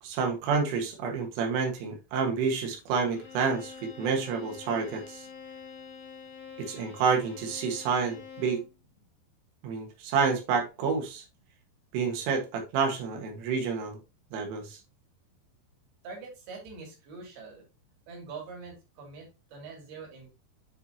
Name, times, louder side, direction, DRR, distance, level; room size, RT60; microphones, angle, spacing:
voice 1, 0.0-5.3 6.6-8.6 9.6-11.3 11.9-14.0 14.3-14.8, right 5 dB, 80° right, 4.0 m, -29 dB
Bowed string instrument, 3.1-8.7, left 6 dB, 85° left, 1.7 m, -46 dB
voice 2, 16.0-17.7 18.1-20.3, right 4 dB, 55° right, 4.3 m, -44 dB
8.9 x 5.3 x 2.8 m
omnidirectional pair, 5.7 m